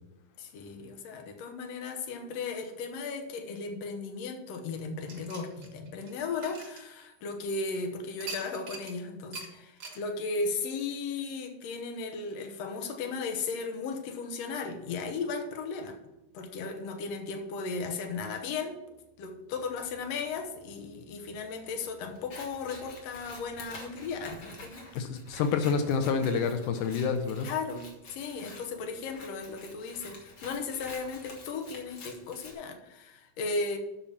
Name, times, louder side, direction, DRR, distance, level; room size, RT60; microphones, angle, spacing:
voice 1, 0.4-16.0 16.3-18.8 19.2-24.9 27.4-33.8, left 4 dB, 65° left, 3 dB, 2.0 m, -36 dB
sound 1, 5.1-7.5 8.2-9.0 9.3-9.5 9.8-10.0, right 3 dB, 45° right, 1.5 m, -43 dB
Scissors, 22.1-32.5, left 2 dB, 45° left, 2.0 m, -49 dB
voice 2, 24.9-27.5, left 5 dB, 85° left, 8 dB, 2.2 m, -28 dB
7.2 x 5.9 x 7.0 m, 0.98 s
omnidirectional pair, 3.5 m